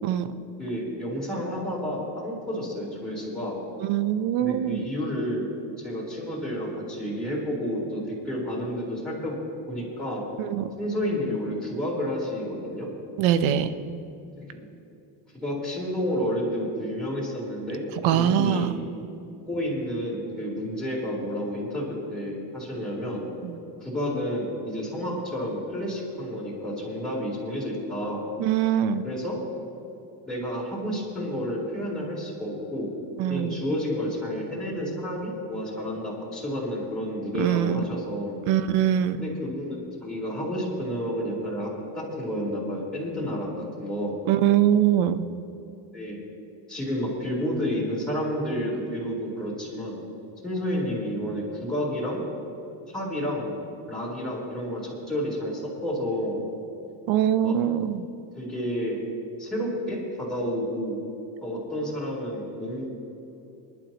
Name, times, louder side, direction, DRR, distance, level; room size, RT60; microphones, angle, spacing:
voice 1, 0.6-3.6 4.4-5.4 5.8-9.4 9.7-10.2 10.8-12.9 14.4-14.7 15.4-17.8 18.1-18.7 19.5-23.2 23.8-28.2 29.0-29.4 30.3-32.9 33.3-38.4 39.1-44.1 45.9-46.2 46.7-50.0 50.4-52.2 52.9-53.5 53.9-56.4 57.4-57.6 58.3-59.0 59.4-61.0 61.4-62.9, equal, ahead, -7 dB, 3.9 m, -30 dB
voice 2, 3.8-4.8 10.4-10.7 13.2-13.7 18.0-18.8 23.4-23.5 28.4-29.0 33.2-33.6 37.4-37.8 38.5-39.2 44.3-45.3 57.1-58.0, right 10 dB, 75° right, 11 dB, 1.0 m, -23 dB
27.5 x 11.5 x 3.0 m, 2.9 s
cardioid pair, 145°, 47 cm